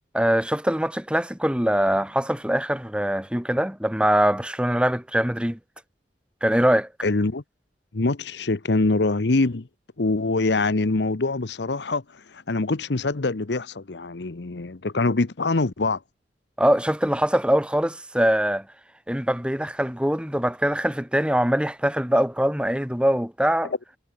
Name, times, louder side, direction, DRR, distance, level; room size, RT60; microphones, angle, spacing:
voice 1, 0.1-5.6 6.4-6.9 16.6-18.7 19.1-23.7, equal, 5° right, 1.7 m, -22 dB
voice 2, 7.0-7.4 7.9-9.7 10.0-16.0 23.6-23.8, left 3 dB, 75° left, 0.9 m, -24 dB
head